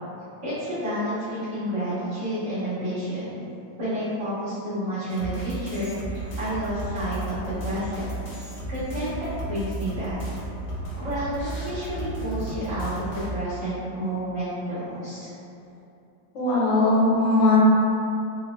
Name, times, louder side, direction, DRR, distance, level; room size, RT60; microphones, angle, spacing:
voice 1, 0.4-3.4 3.8-7.3 7.6-8.1 8.7-10.2 11.0-15.3, equal, 70° right, -18 dB, 2.3 m, -30 dB
sound 1, 5.1-13.3, right 2 dB, 50° left, 0.9 m, -34 dB
voice 2, 16.3-17.6, left 2 dB, 75° left, -7 dB, 1.6 m, -20 dB
4.7 x 2.1 x 3.0 m, 2.8 s
omnidirectional pair, 2.0 m